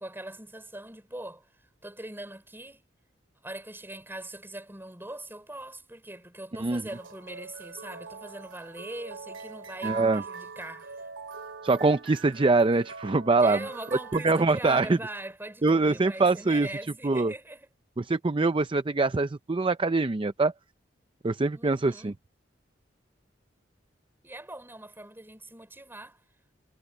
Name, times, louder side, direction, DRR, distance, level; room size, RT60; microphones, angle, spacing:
voice 1, 0.0-1.5 1.8-2.8 3.4-11.1 13.4-17.7 21.5-22.1 24.2-26.2, right 1 dB, 10° right, 5.7 m, -41 dB
sound 1, 6.9-14.4, right 5 dB, 90° right, 2.4 m, -42 dB
voice 2, 9.8-10.2 11.6-13.6 14.1-15.0 15.6-16.7 17.0-17.3 18.0-20.5 21.2-22.1, right 3 dB, 25° right, 0.5 m, -24 dB
head